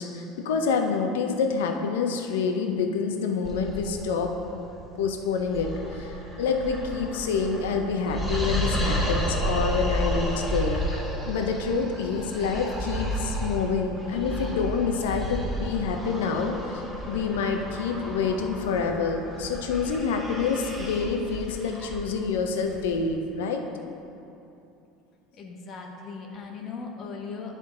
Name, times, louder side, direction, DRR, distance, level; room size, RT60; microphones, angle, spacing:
voice 1, 0.0-4.3 5.0-5.7 6.0-6.1 6.4-16.5 17.1-23.6, left 5 dB, 90° left, 4 dB, 0.5 m, -27 dB
sound 1, 3.4-23.1, equal, 5° right, 1.5 m, -32 dB
voice 2, 25.3-27.6, left 4 dB, 45° left, 0 dB, 1.1 m, -38 dB
9.8 x 3.8 x 3.7 m, 2.7 s
supercardioid pair, 100°, 0 cm